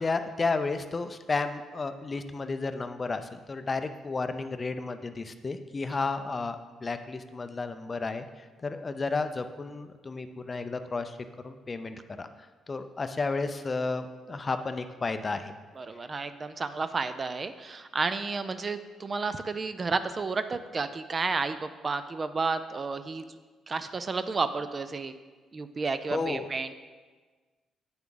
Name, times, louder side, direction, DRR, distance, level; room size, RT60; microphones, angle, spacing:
voice 1, 0.0-11.2 11.4-12.3 12.7-15.5 26.1-26.5, left 3 dB, 30° left, 9 dB, 0.5 m, -32 dB
voice 2, 15.8-23.2 23.7-25.1 25.5-26.7, right 4 dB, 35° right, 11 dB, 0.4 m, -31 dB
8.6 x 5.8 x 3.9 m, 1.4 s
cardioid pair, 90°, 0 cm